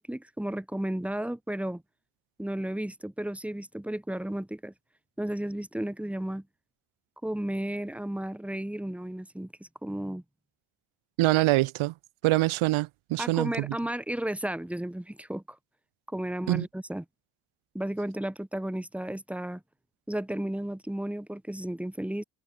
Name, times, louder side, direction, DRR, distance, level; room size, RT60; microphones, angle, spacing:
voice 1, 0.0-1.8 2.4-4.7 5.2-6.4 7.2-10.2 13.2-15.6 16.1-17.0 17.7-19.6 20.1-22.2, right 1 dB, 5° right, 2.8 m, -33 dB
voice 2, 11.2-11.9 12.2-13.7 16.5-16.6, right 18 dB, 85° right, 1.2 m, -25 dB
cardioid pair, 165°, 47 cm